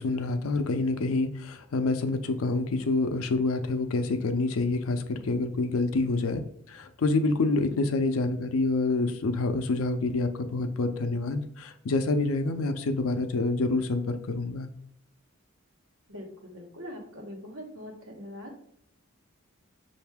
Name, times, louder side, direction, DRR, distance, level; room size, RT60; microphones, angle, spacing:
voice 1, 0.0-6.4 6.7-14.7, left 3 dB, 85° left, 8 dB, 0.5 m, -27 dB
voice 2, 16.1-18.5, equal, 75° right, 0 dB, 1.2 m, -42 dB
5.6 x 2.6 x 3.4 m, 0.68 s
head